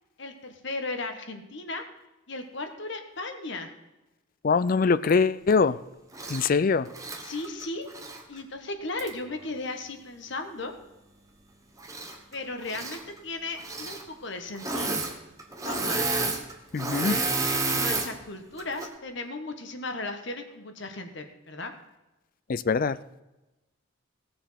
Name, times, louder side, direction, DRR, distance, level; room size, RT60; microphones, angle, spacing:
voice 1, 0.2-1.8 2.3-3.7 6.2-6.5 7.2-7.9 8.3-10.7 12.3-15.0 15.6-16.1 17.6-21.7, left 2 dB, 55° left, 6 dB, 1.3 m, -36 dB
voice 2, 4.4-5.8 6.3-6.9 16.7-17.2 22.5-23.0, left 5 dB, 40° left, 16 dB, 0.3 m, -23 dB
Engine / Mechanisms, 6.1-6.5 6.9-8.2 9.0-9.1 11.8-12.3 12.6-13.0 13.6-14.0 14.5-15.1 15.4-18.1 18.6-18.9, right 3 dB, 15° right, 1.1 m, -30 dB
17.0 x 6.9 x 5.7 m, 1.0 s
head